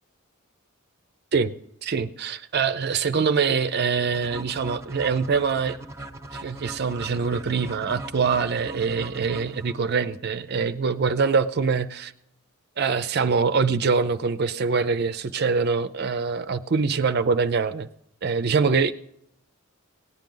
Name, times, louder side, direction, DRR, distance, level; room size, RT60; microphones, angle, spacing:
voice 1, 1.8-5.8 6.3-12.1 12.8-17.9 18.2-18.9, right 5 dB, 50° right, 11 dB, 0.5 m, -24 dB
sound 1, 4.1-10.1, right 1 dB, 15° right, 0.9 m, -39 dB
18.0 x 10.5 x 3.8 m, 0.74 s
head